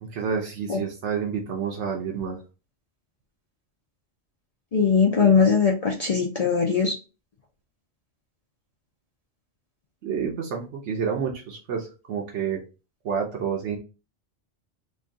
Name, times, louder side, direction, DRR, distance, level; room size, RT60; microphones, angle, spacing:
voice 1, 0.0-2.4 10.0-12.6 13.0-13.8, right 7 dB, 80° right, 1 dB, 1.0 m, -29 dB
voice 2, 4.7-7.0, left 5 dB, 45° left, 0 dB, 0.5 m, -20 dB
3.1 x 2.6 x 3.6 m, 0.31 s
omnidirectional pair, 1.2 m